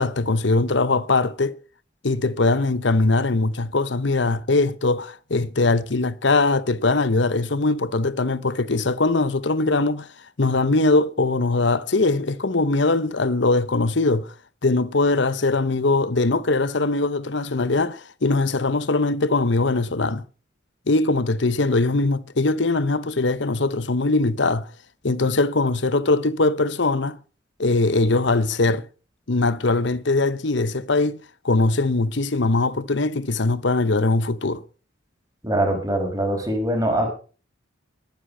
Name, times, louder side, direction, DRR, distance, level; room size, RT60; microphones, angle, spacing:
voice 1, 0.0-1.6 2.0-10.1 10.4-14.3 14.6-20.2 20.9-24.7 25.0-27.2 27.6-28.9 29.3-34.6, left 3 dB, 60° left, 0.9 m, -21 dB
voice 2, 35.4-37.1, right 1 dB, 15° right, 5.2 m, -22 dB
20.5 x 9.9 x 5.5 m
head